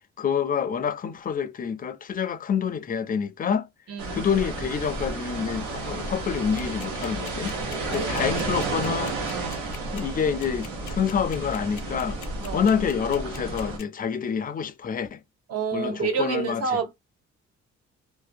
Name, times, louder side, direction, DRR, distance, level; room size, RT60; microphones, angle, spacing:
voice 1, 0.2-3.7 4.1-7.6 7.9-9.2 9.9-15.2 15.7-16.6, left 7 dB, 30° left, 0.4 m, -27 dB
voice 2, 3.9-4.3 7.9-8.3 9.3-9.6 12.4-12.7 15.5-16.9, right 5 dB, 55° right, 0.7 m, -29 dB
sound 1, 4.0-13.8, right 3 dB, 85° right, 1.0 m, -32 dB
sound 2, 6.4-13.8, left 10 dB, 75° left, 0.6 m, -42 dB
2.5 x 2.1 x 2.5 m
cardioid pair, 90°, 30 cm